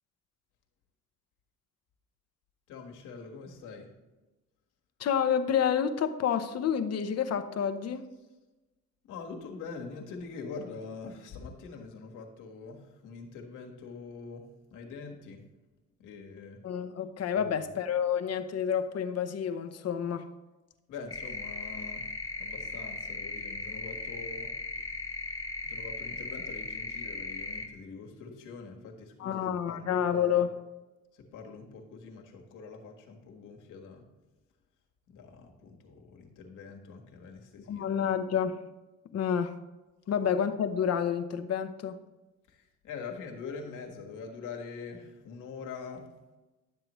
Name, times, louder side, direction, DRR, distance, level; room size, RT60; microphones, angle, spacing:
voice 1, 2.7-4.0 9.1-15.5 16.0-16.6 17.3-17.6 20.9-22.1 22.4-24.6 25.6-30.4 31.1-34.1 35.1-38.1 42.5-46.1, left 4 dB, 85° left, 1 dB, 1.5 m, -44 dB
voice 2, 5.0-8.1 16.6-20.3 29.2-30.5 37.7-38.6 39.1-39.5 40.1-42.0, left 8 dB, 55° left, 8 dB, 0.8 m, -29 dB
sound 1, 21.1-27.7, left 2 dB, 10° left, 1.3 m, -38 dB
11.5 x 7.5 x 3.1 m, 1.1 s
cardioid pair, 90°, 30 cm